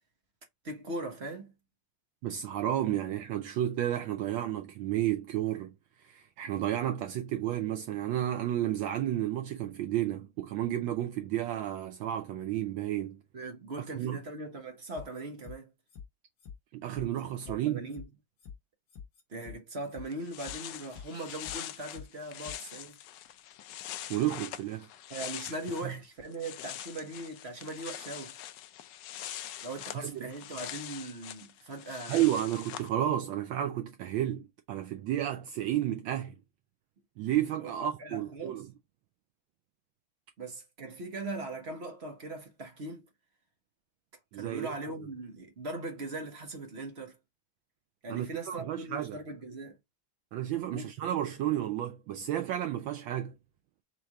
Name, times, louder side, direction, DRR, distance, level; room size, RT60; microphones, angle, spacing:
voice 1, 0.6-1.5 13.3-15.7 17.5-18.1 19.3-23.0 25.1-28.4 29.6-32.2 37.6-38.6 40.4-43.1 44.3-47.2 48.0-49.8 50.7-50.9, right 2 dB, 40° right, 1.0 m, -40 dB
voice 2, 2.2-13.2 14.0-14.2 16.7-17.9 24.1-24.9 25.8-25.9 30.0-30.3 32.1-36.4 37.2-38.7 44.3-44.9 48.1-49.2 50.3-53.4, right 12 dB, 75° right, 1.3 m, -32 dB
sound 1, 15.0-15.6 15.9-16.0 16.4-16.5 16.9-17.5 17.9-18.0 18.4-18.6 18.9-19.6 19.9-20.0 20.4-20.5 20.9-21.6 21.9-22.0 22.4-22.6 22.9-23.0, left 7 dB, 45° left, 1.4 m, -46 dB
sound 2, 19.8-19.9 20.1-26.0 26.2-32.9, left 12 dB, 75° left, 1.0 m, -43 dB
4.6 x 2.5 x 4.5 m
omnidirectional pair, 2.3 m